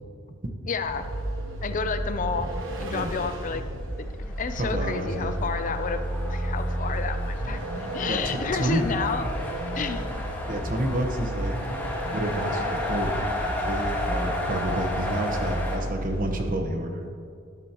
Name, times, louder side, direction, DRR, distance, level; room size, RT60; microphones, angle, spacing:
voice 1, 0.7-1.1 1.6-2.5 2.8-3.6 4.0-10.1, left 5 dB, 40° left, 9 dB, 0.5 m, -31 dB
Vehicle, 0.8-16.7, right 1 dB, 90° right, 1.1 m, -32 dB
sound 1, 4.3-15.8, left 1 dB, 10° left, 1.6 m, -33 dB
voice 2, 4.6-5.3 8.1-8.9 10.5-11.6 12.0-13.1 13.4-17.1, right 1 dB, 45° right, 4 dB, 1.1 m, -29 dB
12.5 x 11.0 x 3.0 m, 2.3 s
head